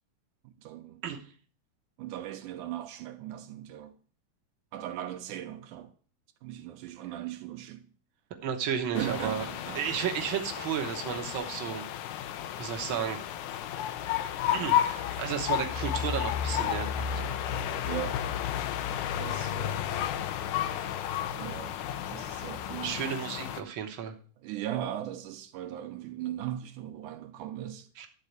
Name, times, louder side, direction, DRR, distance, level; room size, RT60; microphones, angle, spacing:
voice 1, 0.4-1.0 2.0-4.0 4.7-5.9 6.4-7.9 8.9-9.8 17.8-18.2 19.2-19.8 21.3-21.8 22.1-23.0 24.4-27.9, right 12 dB, 80° right, 2.2 m, -38 dB
voice 2, 8.4-9.4 9.7-11.8 12.6-13.2 14.5-17.1 22.8-24.1 28.0-28.1, right 8 dB, 65° right, 1.2 m, -33 dB
sound 1, 8.9-23.6, left 10 dB, 80° left, 2.2 m, -32 dB
12.0 x 4.1 x 8.0 m
omnidirectional pair, 3.7 m